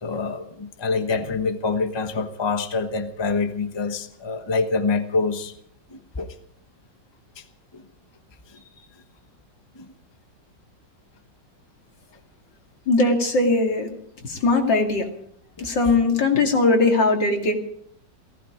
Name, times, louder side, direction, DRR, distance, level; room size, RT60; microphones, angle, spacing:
voice 1, 0.0-5.5 5.9-6.3 7.4-7.5 7.7-7.8 8.5-8.6 9.7-9.9 15.6-15.7, left 4 dB, 20° left, 7 dB, 1.0 m, -26 dB
voice 2, 12.9-13.9 14.2-15.1 15.6-17.5, left 3 dB, 75° left, 2 dB, 3.2 m, -20 dB
17.5 x 16.0 x 5.2 m, 0.67 s
omnidirectional pair, 2.0 m